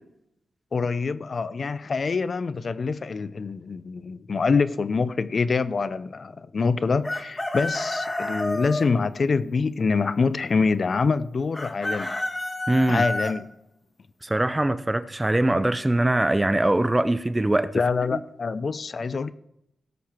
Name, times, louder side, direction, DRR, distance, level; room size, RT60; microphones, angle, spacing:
voice 1, 0.7-12.2 12.9-13.5 17.7-19.3, left 4 dB, 55° left, 0.6 m, -25 dB
Chicken rooster, 7.0-8.9 11.5-13.3, left 1 dB, 20° left, 1.8 m, -29 dB
voice 2, 12.7-13.1 14.2-17.8 18.1-18.2, right 1 dB, 15° right, 0.7 m, -22 dB
18.0 x 7.8 x 4.5 m
cardioid pair, 80°, 0 cm